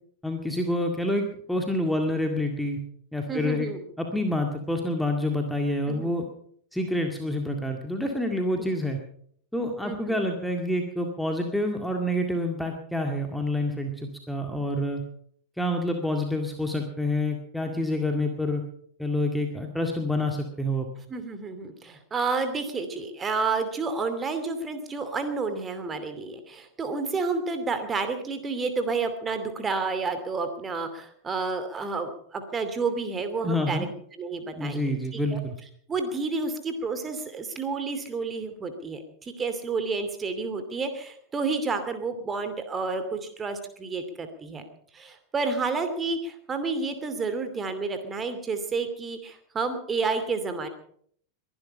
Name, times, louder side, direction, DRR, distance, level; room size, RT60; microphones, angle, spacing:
voice 1, 0.2-2.8 3.1-3.7 4.0-6.3 6.7-9.0 9.5-15.0 15.6-18.6 19.0-20.9 33.4-33.9 34.6-35.5, left 1 dB, ahead, 3 dB, 2.0 m, -27 dB
voice 2, 3.3-3.8 5.9-6.1 9.8-10.0 21.1-33.9 34.2-35.4 35.9-44.7 44.9-50.7, right 4 dB, 20° right, 8 dB, 2.7 m, -30 dB
22.5 x 11.5 x 5.6 m, 0.62 s
figure-of-eight pair, 90°, 0 cm